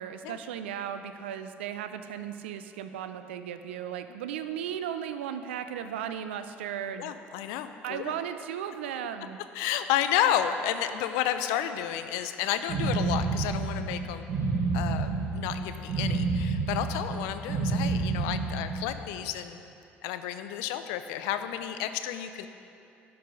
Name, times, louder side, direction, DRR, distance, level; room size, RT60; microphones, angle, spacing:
voice 1, 0.0-7.1 7.8-9.4, right 9 dB, 80° right, 10 dB, 0.4 m, -36 dB
voice 2, 7.0-8.1 9.5-14.3 14.7-19.6 20.0-22.5, left 11 dB, 70° left, 9 dB, 0.4 m, -31 dB
sound 1, 12.7-19.0, right 3 dB, 50° right, 0.9 m, -29 dB
11.0 x 4.7 x 5.1 m, 2.7 s
hypercardioid pair, 55°, 6 cm